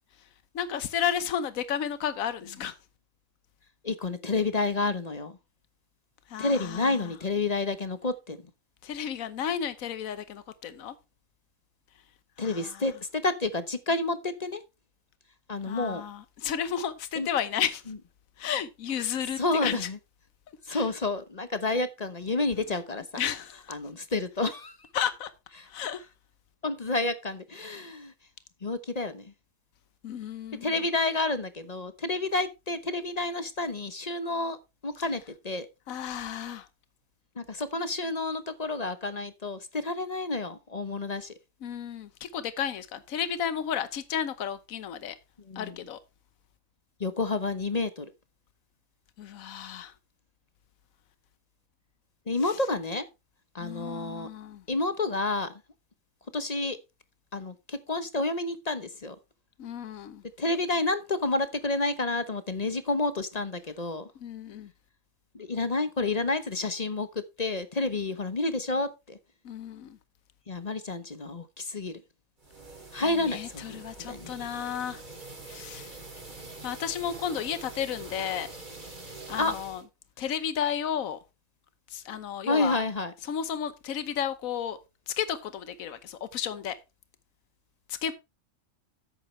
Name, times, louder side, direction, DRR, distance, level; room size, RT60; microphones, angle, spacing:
voice 1, 0.5-2.7 6.3-7.2 8.8-11.0 12.4-13.0 15.6-17.9 18.4-19.9 20.7-20.9 22.7-22.8 23.2-23.7 24.9-25.3 25.6-26.1 30.0-30.8 35.9-36.7 41.6-45.2 45.5-46.0 49.2-49.9 52.4-52.6 53.6-54.6 59.6-60.2 64.1-64.7 69.4-70.0 73.0-75.0 75.5-75.9 76.6-78.5 79.3-79.8 80.2-81.2 81.9-82.8 83.2-84.8 85.1-86.8 87.9-88.1, left 8 dB, 85° left, 1.3 m, -33 dB
voice 2, 3.8-5.3 6.4-8.4 12.4-14.6 15.5-16.0 17.2-17.3 19.4-20.0 20.7-23.0 23.7-24.7 26.6-28.1 28.6-29.2 30.6-34.6 34.8-35.7 37.4-41.3 45.5-45.7 47.0-48.0 52.3-53.1 53.5-54.3 54.7-55.5 56.3-56.8 57.3-59.1 60.4-64.1 65.3-69.2 70.5-72.0 72.9-73.8 74.1-74.5 79.4-79.5 82.5-83.1, left 3 dB, 35° left, 0.9 m, -29 dB
sound 1, 72.4-79.8, right 2 dB, 35° right, 2.9 m, -44 dB
11.0 x 8.5 x 3.2 m
omnidirectional pair, 1.4 m